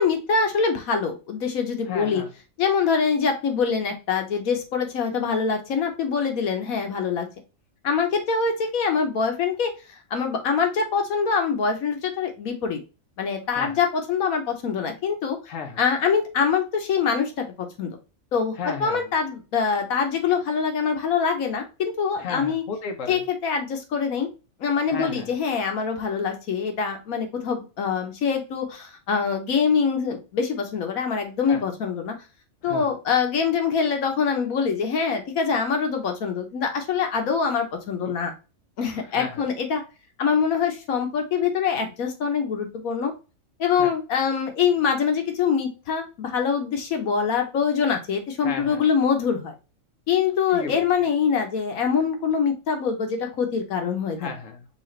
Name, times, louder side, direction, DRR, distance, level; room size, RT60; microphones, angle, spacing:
voice 1, 0.0-2.2 2.6-7.3 7.8-9.7 10.1-12.8 13.2-15.4 15.8-17.9 18.3-22.6 23.1-24.3 24.6-32.1 32.6-38.3 38.8-39.8 40.2-43.1 43.6-49.5 50.1-54.3, left 6 dB, 85° left, 1.4 m, -24 dB
voice 2, 1.8-2.3 13.5-13.8 15.4-15.8 18.5-19.1 22.2-23.2 24.9-25.3 31.5-31.6 32.6-32.9 38.0-38.1 38.8-39.4 43.7-43.9 48.4-48.8 50.5-50.8 54.2-54.7, left 5 dB, 65° left, 1.3 m, -34 dB
6.8 x 2.5 x 3.2 m
omnidirectional pair, 1.4 m